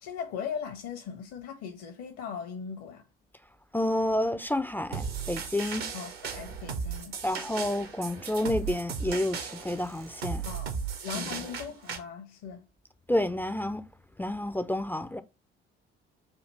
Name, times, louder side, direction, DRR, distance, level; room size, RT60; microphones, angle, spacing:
voice 1, 0.0-3.0 5.9-7.2 10.4-10.7 11.0-12.6, left 7 dB, 55° left, 0.7 m, -39 dB
voice 2, 3.7-5.9 7.2-10.5 11.1-11.2 13.1-13.8 14.2-15.2, left 1 dB, 5° left, 0.3 m, -29 dB
sound 1, 4.9-12.0, right 6 dB, 75° right, 0.8 m, -36 dB
6.4 x 2.4 x 3.1 m
figure-of-eight pair, 45°, 30 cm